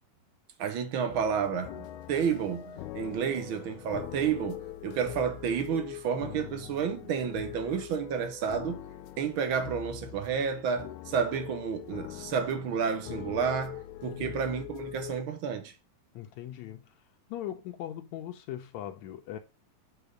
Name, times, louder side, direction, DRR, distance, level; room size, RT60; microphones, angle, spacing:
voice 1, 0.6-8.8 9.2-15.7, right 7 dB, 60° right, 1.5 m, -31 dB
sound 1, 1.1-15.2, left 13 dB, 90° left, 2.1 m, -42 dB
voice 2, 14.0-14.4 16.2-16.8 17.3-19.4, left 11 dB, 75° left, 2.0 m, -40 dB
8.1 x 3.8 x 5.0 m
omnidirectional pair, 3.4 m